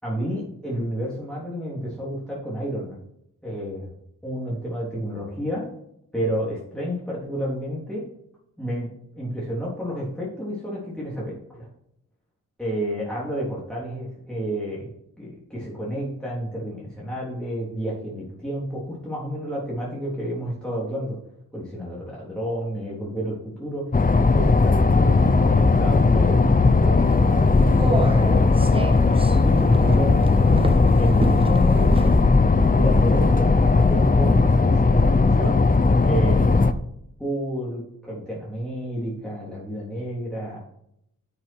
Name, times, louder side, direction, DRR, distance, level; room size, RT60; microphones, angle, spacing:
voice 1, 0.0-3.0 3.4-3.9 4.2-5.6 6.1-8.0 8.6-11.7 12.6-14.9 15.2-21.2 21.5-26.4 26.8-28.7 29.4-32.1 32.5-35.6 36.0-36.7 37.2-40.6, equal, 5° left, -6 dB, 3.5 m, -30 dB
sound 1, 23.9-36.7, left 3 dB, 25° left, 0.7 m, -17 dB
sound 2, 27.0-32.2, right 2 dB, 15° right, 1.0 m, -29 dB
9.2 x 7.9 x 4.6 m, 0.75 s
wide cardioid pair, 75°, 34 cm